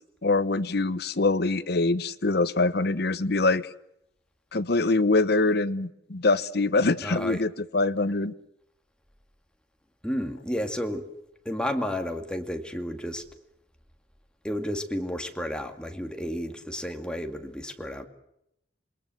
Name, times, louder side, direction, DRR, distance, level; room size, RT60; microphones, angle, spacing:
voice 1, 0.2-3.7 4.5-8.3, left 3 dB, 65° left, 0.9 m, -24 dB
voice 2, 7.0-7.4 10.0-11.1 11.5-13.2 14.4-18.1, equal, 5° left, 2.1 m, -32 dB
28.0 x 21.5 x 7.7 m
head